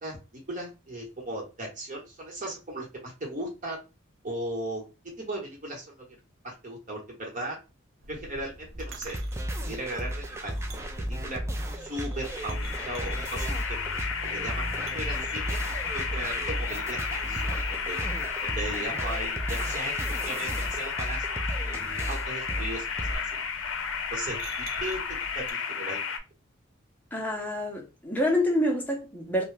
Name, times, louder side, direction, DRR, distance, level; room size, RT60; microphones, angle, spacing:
voice 1, 0.0-3.8 4.2-4.8 5.2-6.1 6.4-7.6 8.1-9.2 9.6-10.8 11.1-11.4 11.8-13.8 14.2-15.6 15.9-18.0 18.4-23.4 24.1-26.0, right 1 dB, 40° right, 1.1 m, -37 dB
sound 1, 8.0-25.5, right 1 dB, 85° right, 0.7 m, -44 dB
sound 2, 8.8-23.2, equal, 15° right, 0.3 m, -34 dB
sound 3, 12.2-26.2, left 6 dB, 70° left, 0.5 m, -33 dB
voice 2, 27.1-29.4, left 1 dB, 10° left, 0.7 m, -27 dB
2.7 x 2.2 x 3.3 m
head